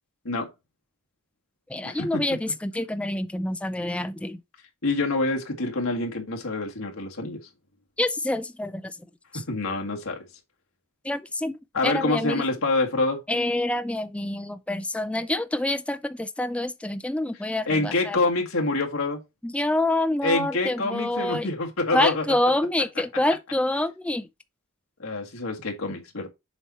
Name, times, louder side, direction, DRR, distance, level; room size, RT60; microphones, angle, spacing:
voice 1, 1.7-4.4 8.0-9.0 9.3-9.4 11.0-12.4 13.3-18.2 19.4-21.5 21.9-24.3, left 1 dB, 5° left, 0.3 m, -27 dB
voice 2, 4.8-7.4 9.3-10.2 11.7-13.2 17.7-19.2 20.2-22.2 25.0-26.3, left 2 dB, 65° left, 1.8 m, -26 dB
7.1 x 4.2 x 4.1 m
head